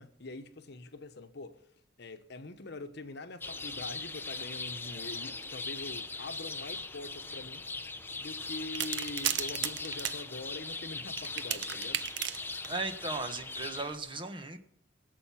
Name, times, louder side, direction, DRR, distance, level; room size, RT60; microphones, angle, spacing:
voice 1, 0.0-1.6 2.0-7.7 8.2-12.0, left 2 dB, 60° left, 1.1 m, -44 dB
sound 1, 3.4-14.0, left 3 dB, 10° left, 0.6 m, -40 dB
sound 2, 8.7-10.2 11.2-12.8 13.8-13.9, right 10 dB, 65° right, 0.7 m, -35 dB
voice 2, 12.7-14.6, right 3 dB, 25° right, 1.3 m, -36 dB
22.0 x 7.8 x 5.8 m
head